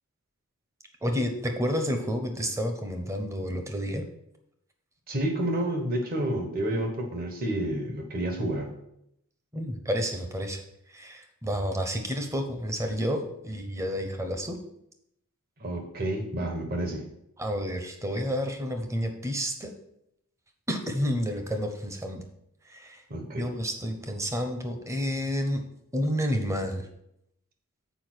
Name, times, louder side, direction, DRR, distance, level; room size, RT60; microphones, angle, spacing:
voice 1, 1.0-4.0 9.5-10.6 10.9-14.6 17.4-19.7 20.7-22.2 22.7-23.0 23.4-25.6 25.9-26.9, equal, 15° right, 5 dB, 0.9 m, -30 dB
voice 2, 5.1-8.7 15.6-17.1 23.1-23.5, right 1 dB, 40° right, 4 dB, 1.4 m, -29 dB
7.0 x 4.9 x 6.2 m, 0.78 s
head